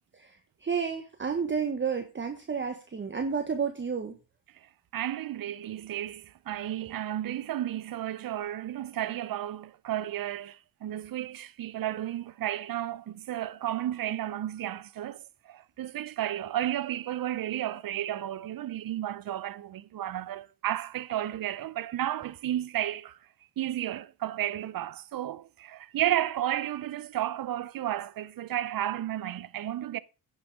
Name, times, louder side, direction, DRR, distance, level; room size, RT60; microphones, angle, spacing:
voice 1, 0.1-4.2, right 6 dB, 25° right, 1.3 m, -31 dB
voice 2, 4.9-23.2 23.6-30.0, right 12 dB, 50° right, 0.7 m, -33 dB
10.0 x 6.3 x 4.9 m
cardioid pair, 85°, 43 cm